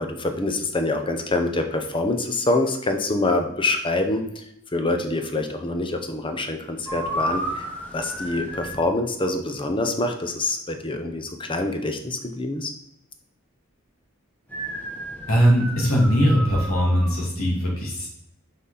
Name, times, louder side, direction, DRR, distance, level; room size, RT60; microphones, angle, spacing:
voice 1, 0.0-4.2 4.7-7.6 7.9-12.7, left 2 dB, 25° left, 6 dB, 0.8 m, -25 dB
sound 1, 6.9-8.8 14.5-17.2, right 1 dB, 5° left, 1.2 m, -32 dB
voice 2, 15.3-18.1, equal, 80° left, -3 dB, 2.8 m, -20 dB
6.0 x 5.5 x 4.2 m, 0.78 s
head